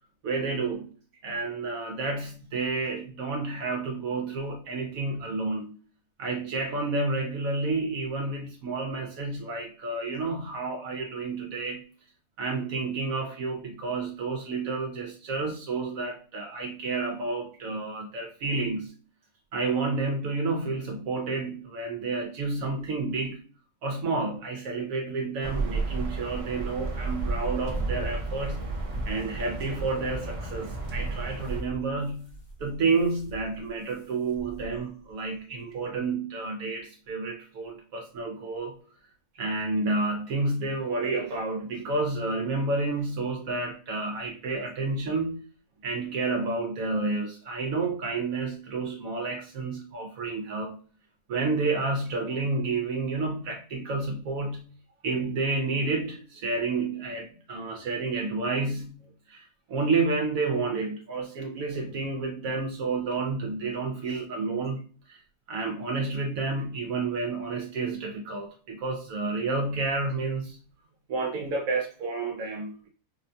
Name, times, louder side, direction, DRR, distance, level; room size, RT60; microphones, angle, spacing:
voice 1, 0.2-0.9 1.2-5.8 6.2-11.9 12.4-18.9 19.5-23.5 23.8-28.7 29.1-38.8 39.3-45.4 45.8-50.8 51.3-54.7 55.0-65.2 65.5-70.6 71.1-72.9, right 3 dB, 70° right, 1.0 m, -30 dB
sound 1, 25.4-31.6, right 3 dB, 50° right, 0.4 m, -33 dB
sound 2, 27.0-34.0 34.3-34.8 35.1-35.2 35.7-35.8, right 1 dB, 25° left, 0.6 m, -37 dB
5.2 x 2.2 x 2.6 m
omnidirectional pair, 1.6 m